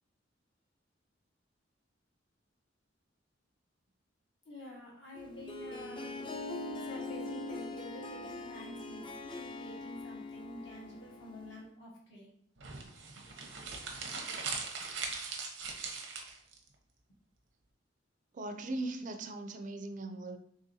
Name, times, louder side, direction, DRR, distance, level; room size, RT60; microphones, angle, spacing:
voice 1, 4.4-6.2 6.6-12.3, left 1 dB, 75° left, 1.3 m, -48 dB
Harp, 5.1-11.7, left 2 dB, 25° left, 0.3 m, -42 dB
sound 1, 12.6-16.6, right 4 dB, 90° right, 0.7 m, -40 dB
voice 2, 18.3-20.4, right 2 dB, 45° right, 0.4 m, -39 dB
3.7 x 3.3 x 2.7 m
head